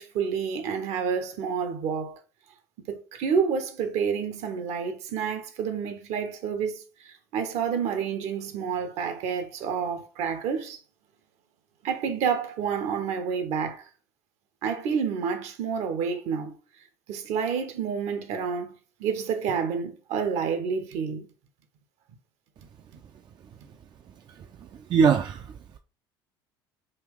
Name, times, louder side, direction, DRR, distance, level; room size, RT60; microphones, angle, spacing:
voice 1, 0.0-2.2 2.9-10.8 11.8-13.8 14.6-16.6 17.1-18.7 19.0-21.3, right 6 dB, 60° right, 0.7 m, -29 dB
voice 2, 24.3-25.8, right 6 dB, 35° right, 0.3 m, -24 dB
3.8 x 2.3 x 3.4 m
hypercardioid pair, 65°, 13 cm